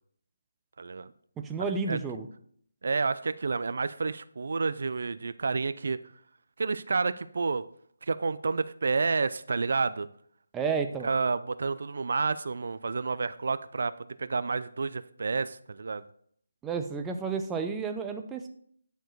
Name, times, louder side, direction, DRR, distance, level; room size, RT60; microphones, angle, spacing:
voice 1, 0.8-1.1 1.9-2.0 2.8-6.0 6.6-7.6 8.1-10.1 11.0-13.9 14.2-16.0, right 4 dB, 60° right, 14 dB, 0.4 m, -29 dB
voice 2, 1.4-2.3 10.5-11.1 16.6-18.5, right 5 dB, 10° right, 4 dB, 0.5 m, -31 dB
10.5 x 4.5 x 4.6 m, 0.63 s
figure-of-eight pair, 165°, 0 cm